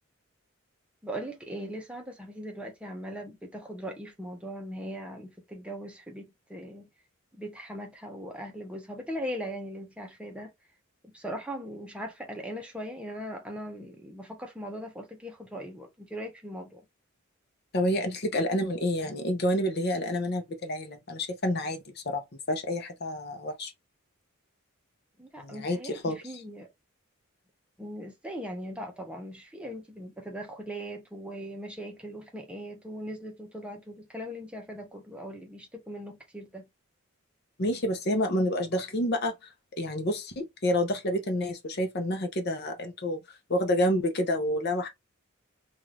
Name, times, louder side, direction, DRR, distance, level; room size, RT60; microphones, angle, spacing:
voice 1, 1.0-6.9 7.3-10.5 11.0-16.8 25.2-26.7 27.8-36.7, equal, 5° right, 0.6 m, -39 dB
voice 2, 17.7-23.7 25.4-26.2 37.6-39.3 39.8-43.2 43.5-44.9, left 1 dB, 50° left, 0.7 m, -29 dB
2.7 x 2.4 x 3.3 m
head